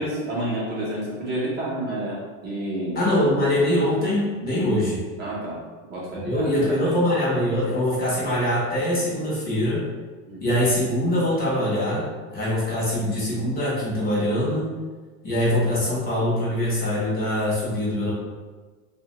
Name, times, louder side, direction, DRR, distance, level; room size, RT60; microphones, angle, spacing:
voice 1, 0.0-3.0 5.2-5.6 5.9-6.5 6.9-7.0 10.3-10.4, right 1 dB, 25° right, -6 dB, 0.6 m, -29 dB
voice 2, 2.9-5.0 6.1-9.8 10.4-14.7 15.2-18.1, left 1 dB, 25° left, -6 dB, 0.6 m, -23 dB
2.8 x 2.1 x 2.8 m, 1.4 s
supercardioid pair, 155°, 38 cm